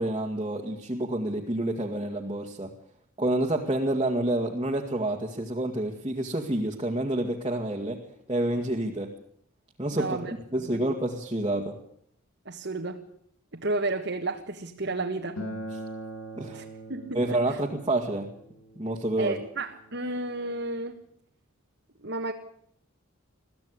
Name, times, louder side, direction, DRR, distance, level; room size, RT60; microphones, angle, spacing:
voice 1, 0.0-2.7 3.2-8.0 8.3-9.1 9.8-11.7 16.4-16.6 17.1-18.3 18.8-19.4, right 1 dB, 25° right, -1 dB, 2.1 m, -28 dB
voice 2, 9.9-10.3 10.6-10.8 12.4-13.1 13.5-15.4 16.5-17.6 19.2-21.0 22.0-22.3, right 2 dB, 55° right, 2 dB, 1.7 m, -32 dB
Acoustic guitar, 15.4-20.6, right 1 dB, 90° left, 7.8 m, -42 dB
22.0 x 15.0 x 9.7 m, 0.68 s
head